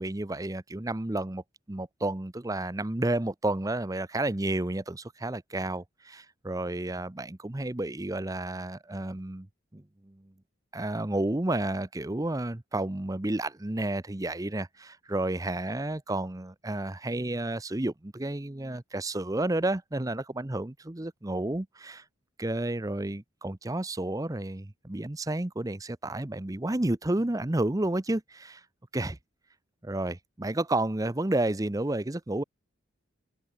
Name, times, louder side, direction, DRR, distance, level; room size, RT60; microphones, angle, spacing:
voice 1, 0.0-1.4 1.7-9.5 9.7-10.3 10.7-22.0 22.4-28.6 28.9-29.2 29.8-32.4, right 1 dB, 15° right, 0.7 m, -31 dB
open air
head